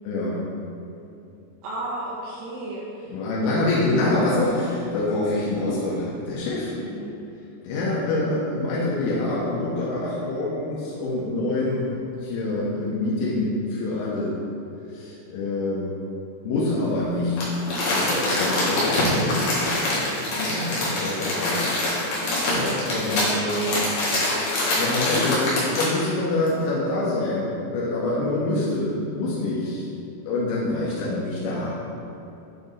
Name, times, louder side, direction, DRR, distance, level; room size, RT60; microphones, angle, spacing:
voice 1, 0.0-0.4 3.1-6.7 7.6-11.9 12.2-14.4 14.9-15.9 16.5-17.5 17.9-19.4 20.4-21.7 22.2-23.8 24.7-29.9 30.3-31.8, left 2 dB, 85° left, -7 dB, 3.5 m, -26 dB
voice 2, 1.6-3.1 3.4-3.7 6.8-7.1 22.4-22.8, right 2 dB, 80° right, -6 dB, 2.4 m, -34 dB
Crumpling crinkling, 17.4-26.0 26.5-26.6, left 1 dB, 60° left, 2.0 m, -24 dB
9.5 x 4.4 x 3.2 m, 2.7 s
omnidirectional pair, 5.7 m